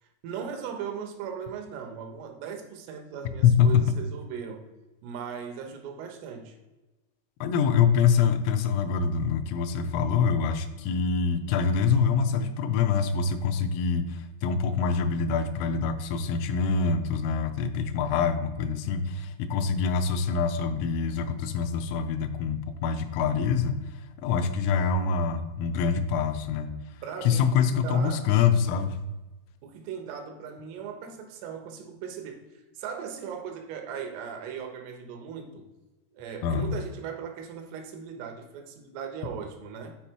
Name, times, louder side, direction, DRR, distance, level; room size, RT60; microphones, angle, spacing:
voice 1, 0.0-4.6 5.0-6.6 27.0-28.3 29.6-35.6 36.1-40.0, right 7 dB, 80° right, 4 dB, 3.6 m, -38 dB
voice 2, 3.4-3.9 7.4-23.8 24.2-26.8 27.2-29.0 36.4-36.7, left 6 dB, 85° left, 7 dB, 3.4 m, -25 dB
8.4 x 4.8 x 4.5 m, 1.1 s
omnidirectional pair, 5.8 m